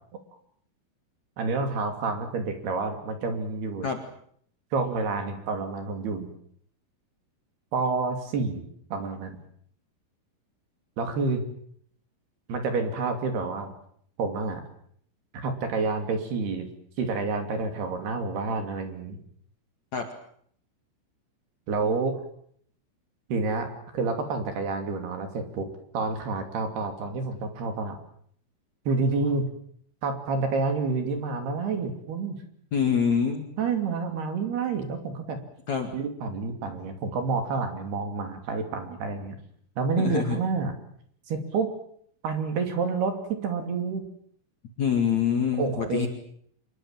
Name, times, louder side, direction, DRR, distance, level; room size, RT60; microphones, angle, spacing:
voice 1, 1.4-3.9 4.7-6.3 7.7-8.6 8.9-9.4 11.0-11.4 12.5-13.7 14.2-14.6 15.3-16.7 17.0-19.2 21.7-22.2 23.3-25.7 25.9-28.0 28.9-29.5 30.0-32.4 33.6-35.4 35.9-39.3 39.8-40.8 41.3-41.7 42.2-44.0 45.6-46.1, right 4 dB, 55° right, 6 dB, 4.5 m, -28 dB
voice 2, 32.7-33.5 35.7-35.9 40.0-40.4 44.8-46.1, left 7 dB, 45° left, 4 dB, 2.6 m, -25 dB
27.0 x 21.5 x 7.6 m, 0.64 s
omnidirectional pair, 5.8 m